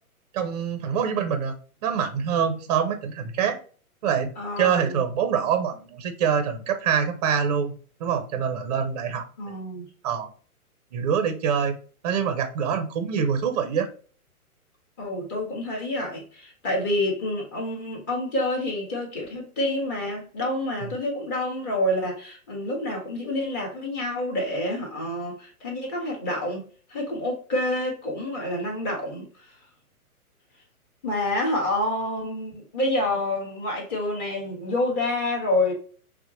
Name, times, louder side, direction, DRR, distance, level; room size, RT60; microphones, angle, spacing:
voice 1, 0.3-1.5 1.8-3.6 4.0-4.3 4.6-7.7 8.0-9.2 10.0-10.3 10.9-11.8 12.0-13.9 20.8-20.9, right 7 dB, 30° right, 0.5 m, -25 dB
voice 2, 4.4-5.0 9.4-9.9 15.0-29.3 31.0-35.7, left 1 dB, 25° left, 1.3 m, -28 dB
5.6 x 2.1 x 2.9 m
hypercardioid pair, 130°, 44 cm